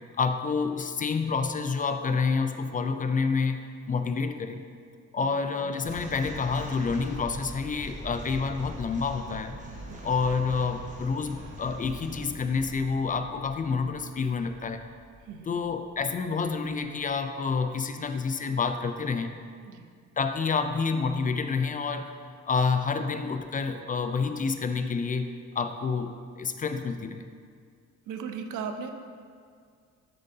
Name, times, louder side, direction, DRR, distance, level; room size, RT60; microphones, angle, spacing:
voice 1, 0.2-4.6 5.1-9.6 10.0-14.9 15.5-19.3 20.2-22.1 22.5-27.3, left 5 dB, 30° left, 8 dB, 0.3 m, -28 dB
sound 1, 5.8-17.1, right 1 dB, 25° right, 1.2 m, -43 dB
voice 2, 28.1-28.9, right 6 dB, 85° right, 7 dB, 0.6 m, -37 dB
7.4 x 6.4 x 2.7 m, 2.1 s
cardioid pair, 90°, 30 cm